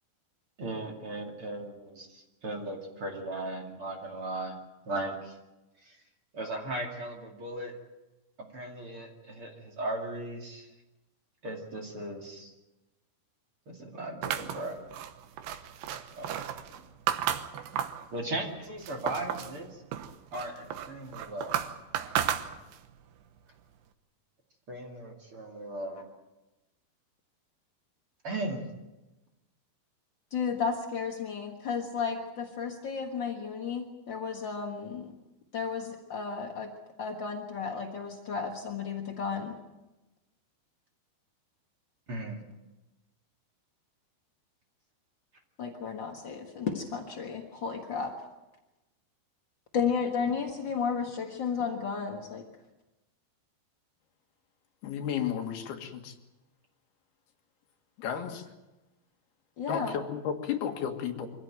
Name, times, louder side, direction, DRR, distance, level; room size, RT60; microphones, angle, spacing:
voice 1, 0.6-4.6 4.9-5.4 5.8-6.0 6.3-7.7 8.5-10.7 11.4-12.5 13.7-14.8 16.2-16.3 18.1-19.8 20.3-21.5 24.7-26.0 28.2-28.7 42.1-42.4, right 1 dB, 40° right, 1 dB, 2.8 m, -37 dB
sound 1, 14.2-18.1 18.5-19.6 19.9-22.9, right 10 dB, 85° right, 3.2 m, -33 dB
voice 2, 30.3-35.1 35.5-36.7 37.0-39.6 45.6-48.1 49.7-52.4 59.6-60.0, left 6 dB, 60° left, 2 dB, 1.2 m, -33 dB
voice 3, 54.8-56.1 58.0-58.4 59.7-61.3, left 8 dB, 75° left, 4 dB, 3.7 m, -33 dB
24.5 x 16.0 x 9.1 m, 1.0 s
omnidirectional pair, 4.6 m